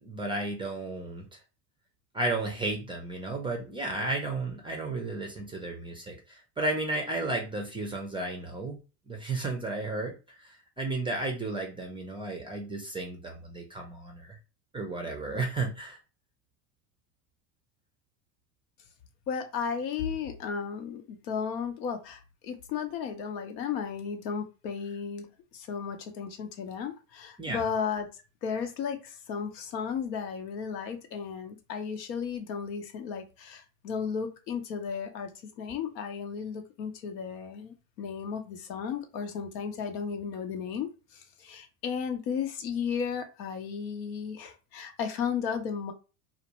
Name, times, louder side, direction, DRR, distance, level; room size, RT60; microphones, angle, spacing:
voice 1, 0.0-1.4 2.1-8.8 9.1-14.4 14.7-16.0 27.4-27.6, right 2 dB, 10° right, 2 dB, 0.3 m, -33 dB
voice 2, 19.3-25.3 25.5-35.3 35.6-45.9, left 6 dB, 90° left, 6 dB, 0.7 m, -34 dB
2.5 x 2.0 x 2.9 m, 0.31 s
supercardioid pair, 95°, 49 cm